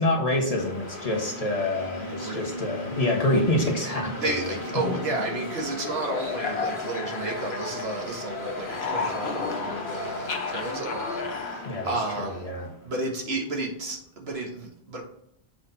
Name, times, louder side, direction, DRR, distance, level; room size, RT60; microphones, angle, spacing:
voice 1, 0.0-4.4 11.6-12.7, left 1 dB, 35° left, 0 dB, 1.4 m, -26 dB
sound 1, 0.6-12.9, left 2 dB, 55° left, 1.7 m, -37 dB
voice 2, 2.1-2.5 4.2-12.5 12.8-15.0, right 2 dB, 80° right, 0 dB, 1.7 m, -32 dB
sound 2, 4.7-8.2 8.5-12.5, left 5 dB, 80° left, 1.1 m, -34 dB
7.6 x 4.1 x 4.0 m, 0.74 s
omnidirectional pair, 1.0 m